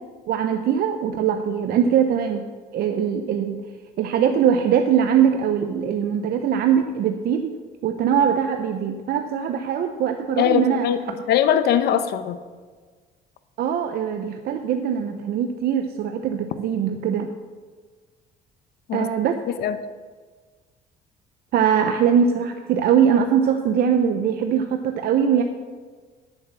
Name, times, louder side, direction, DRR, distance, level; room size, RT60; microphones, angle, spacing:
voice 1, 0.3-2.4 2.7-3.6 4.0-7.5 7.8-10.9 13.6-17.3 18.9-19.4 21.5-25.4, right 8 dB, 65° right, 6 dB, 0.7 m, -21 dB
voice 2, 10.4-11.0 11.3-12.4 18.9-19.1 19.6-19.8, left 9 dB, 75° left, 11 dB, 0.8 m, -20 dB
10.0 x 7.1 x 6.7 m, 1.5 s
cardioid pair, 110°, 17 cm